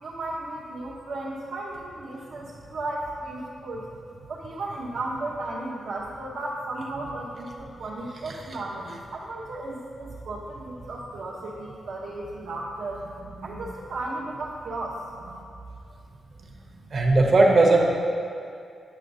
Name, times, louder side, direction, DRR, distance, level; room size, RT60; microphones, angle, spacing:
voice 1, 0.0-3.9 4.3-13.0 13.4-15.0, right 2 dB, 65° right, -5 dB, 0.8 m, -34 dB
voice 2, 16.9-17.8, right 2 dB, 40° right, 0 dB, 0.8 m, -18 dB
9.6 x 6.8 x 2.7 m, 2.4 s
wide cardioid pair, 175°, 0 cm